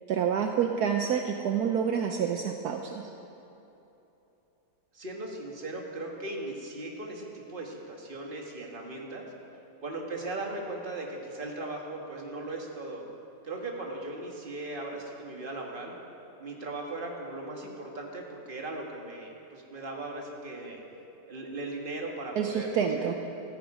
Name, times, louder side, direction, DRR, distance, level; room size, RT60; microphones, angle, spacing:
voice 1, 0.1-3.0 22.4-23.1, right 7 dB, 70° right, 3 dB, 1.2 m, -28 dB
voice 2, 4.9-9.3 9.8-13.0 13.4-15.9 16.4-20.8 21.3-23.1, right 2 dB, 30° right, 0 dB, 1.8 m, -38 dB
16.0 x 14.0 x 5.0 m, 3.0 s
omnidirectional pair, 1.8 m